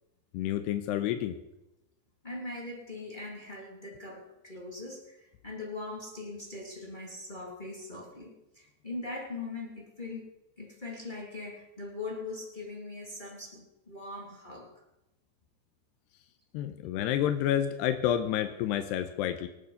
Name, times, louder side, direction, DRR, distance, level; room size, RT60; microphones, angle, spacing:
voice 1, 0.3-1.4 16.5-19.5, left 11 dB, 80° left, 8 dB, 2.7 m, -29 dB
voice 2, 2.2-10.3 10.6-14.8, left 2 dB, 15° left, -1 dB, 1.7 m, -41 dB
24.5 x 9.5 x 5.5 m, 0.96 s
omnidirectional pair, 5.2 m